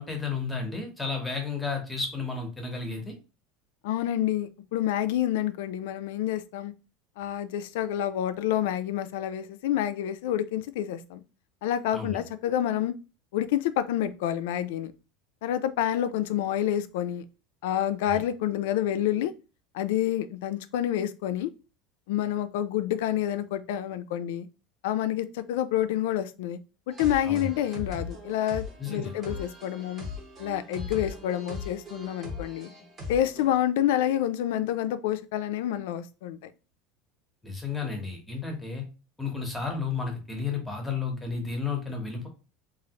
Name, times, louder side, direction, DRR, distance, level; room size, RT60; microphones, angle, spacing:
voice 1, 0.0-3.1 11.9-12.2 18.1-18.2 27.2-27.5 28.8-29.1 37.4-38.8 39.2-42.3, left 5 dB, 5° left, 0.7 m, -32 dB
voice 2, 3.8-6.7 7.2-11.2 11.6-12.9 13.3-14.9 15.4-17.2 17.6-19.3 19.7-21.5 22.1-24.5 24.8-26.6 26.9-30.1 30.4-32.7 33.1-36.5, left 11 dB, 80° left, 0.3 m, -28 dB
sound 1, 26.9-33.5, left 3 dB, 25° right, 0.8 m, -40 dB
3.1 x 2.4 x 2.8 m
cardioid pair, 165°, 0 cm